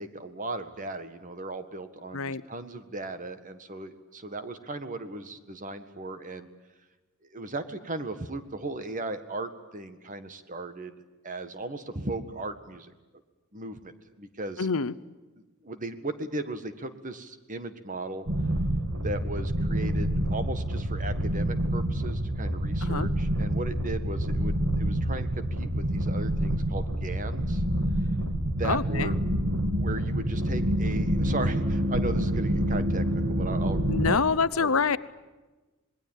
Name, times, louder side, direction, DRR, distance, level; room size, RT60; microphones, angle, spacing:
voice 1, 0.0-6.5 7.3-10.9 11.2-12.9 13.5-14.7 15.6-18.2 19.0-27.6 28.6-29.2 29.7-34.2 34.6-34.8, right 2 dB, 35° right, 10 dB, 1.7 m, -37 dB
voice 2, 14.6-14.9 22.8-23.1 28.6-29.1 33.9-35.0, left 5 dB, 70° left, 17 dB, 0.8 m, -26 dB
sound 1, 18.3-34.2, right 1 dB, 65° right, 2.5 m, -27 dB
26.5 x 20.5 x 9.2 m, 1.2 s
head